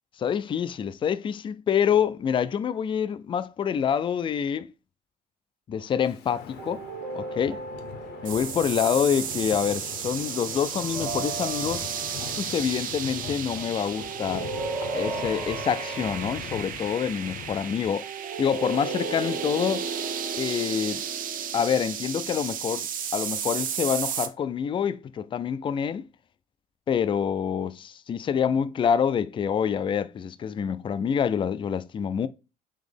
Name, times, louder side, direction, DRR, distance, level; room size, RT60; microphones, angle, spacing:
voice 1, 0.2-4.7 5.7-6.8 7.1-7.6 8.2-11.8 12.4-14.5 14.9-18.1 18.4-19.9 20.4-21.1 21.5-22.9 23.1-26.1 26.9-32.3, left 8 dB, 30° left, 0.3 m, -26 dB
Wind, 6.0-17.9, left 7 dB, 75° left, 0.8 m, -41 dB
sound 1, 6.6-9.0 10.7-12.6 14.0-16.7 18.0-22.5, right 4 dB, 70° right, 1.6 m, -36 dB
sound 2, 8.3-24.3, right 9 dB, 55° right, 0.6 m, -34 dB
4.0 x 3.0 x 3.3 m
cardioid pair, 110°, 17 cm